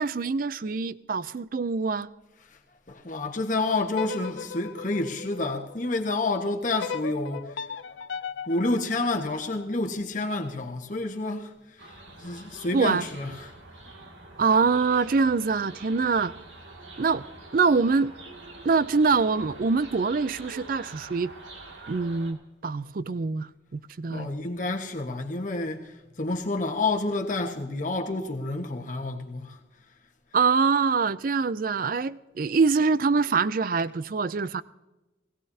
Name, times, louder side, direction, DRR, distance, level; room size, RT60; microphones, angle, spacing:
voice 1, 0.0-2.1 12.7-13.1 14.4-16.3 17.0-17.2 17.5-18.1 18.6-21.3 21.9-22.4 22.6-24.3 30.3-34.6, right 4 dB, 45° right, 0.4 m, -24 dB
voice 2, 2.9-7.5 8.5-11.5 12.2-13.5 24.1-29.6, left 2 dB, 40° left, 1.4 m, -29 dB
sound 1, 4.0-6.1 6.8-9.9, left 6 dB, 80° left, 0.5 m, -38 dB
sound 2, 11.8-22.3, right 2 dB, 80° right, 2.3 m, -45 dB
21.0 x 16.5 x 2.8 m
head